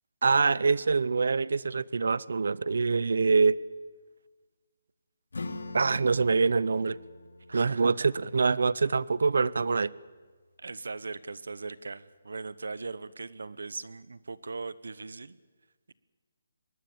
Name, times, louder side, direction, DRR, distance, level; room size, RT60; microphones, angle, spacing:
voice 1, 0.2-3.6 5.7-7.0 7.5-9.9, right 4 dB, 65° right, 22 dB, 0.7 m, -25 dB
Acoustic guitar / Strum, 5.3-10.6, left 2 dB, 90° left, 2.8 m, -44 dB
voice 2, 7.5-7.9 10.6-15.4, right 4 dB, 85° right, 17 dB, 1.1 m, -39 dB
24.5 x 20.0 x 7.2 m, 1.4 s
hypercardioid pair, 175°, 0 cm